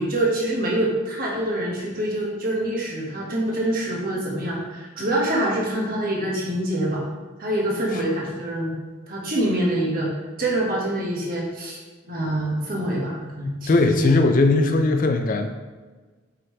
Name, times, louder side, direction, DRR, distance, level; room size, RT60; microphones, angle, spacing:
voice 1, 0.0-7.0 7.4-8.7 9.1-10.1 10.4-11.8 12.0-14.2, right 1 dB, 45° right, -3 dB, 1.5 m, -25 dB
voice 2, 13.7-15.5, left 3 dB, 45° left, 6 dB, 0.4 m, -19 dB
5.5 x 5.5 x 3.2 m, 1.4 s
head